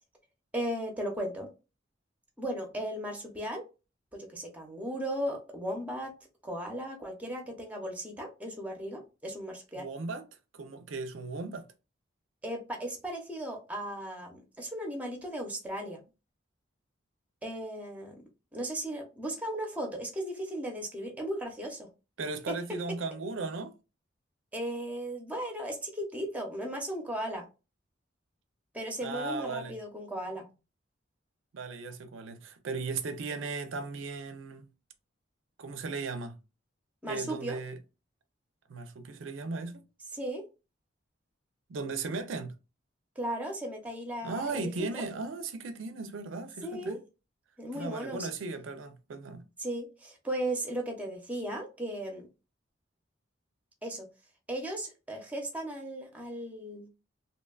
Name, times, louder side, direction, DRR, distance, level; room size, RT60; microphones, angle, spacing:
voice 1, 0.5-1.5 2.4-3.6 4.1-6.1 6.4-9.9 12.4-16.0 17.4-18.2 18.5-21.9 22.5-22.6 24.5-27.5 28.7-30.4 37.0-37.6 40.1-40.5 43.2-45.1 46.6-47.0 47.6-48.3 49.6-52.3 53.8-54.1 54.5-56.9, right 1 dB, 10° right, 0.6 m, -36 dB
voice 2, 9.8-10.2 10.5-11.7 22.2-23.7 29.0-29.8 31.5-34.7 35.6-36.3 37.0-37.8 38.7-39.8 41.7-42.5 44.2-47.0 47.7-49.4, right 3 dB, 85° right, 0.4 m, -36 dB
2.9 x 2.2 x 2.2 m
head